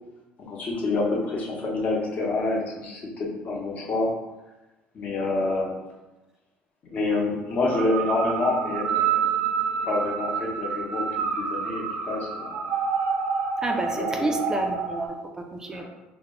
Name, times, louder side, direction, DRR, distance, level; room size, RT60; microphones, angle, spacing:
voice 1, 0.4-4.1 4.9-5.7 6.9-9.3 9.8-12.7 14.0-14.3 15.7-15.8, left 2 dB, 40° left, -3 dB, 0.7 m, -27 dB
sound 1, 7.5-15.1, right 6 dB, 80° right, 0.5 m, -28 dB
voice 2, 13.6-15.8, right 2 dB, 15° right, 3 dB, 0.3 m, -30 dB
2.1 x 2.0 x 3.6 m, 1.1 s
cardioid pair, 135°, 4 cm